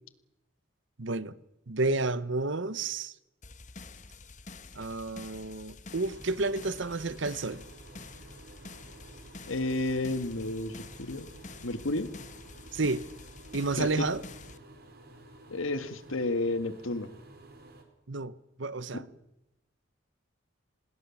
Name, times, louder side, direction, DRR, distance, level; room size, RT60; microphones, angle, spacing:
voice 1, 1.0-1.3 1.7-3.1 4.8-7.6 12.7-13.0 13.5-14.2 18.1-18.3 18.6-19.0, right 3 dB, 70° right, 1.0 m, -30 dB
sound 1, 3.4-14.6, left 3 dB, 35° left, 1.3 m, -48 dB
sound 2, 5.9-17.8, right 2 dB, 50° right, 4.2 m, -52 dB
voice 2, 9.5-11.3 11.6-12.1 13.8-14.1 15.5-17.1 18.9-19.0, left 2 dB, 90° left, 1.9 m, -31 dB
26.0 x 20.5 x 7.3 m
head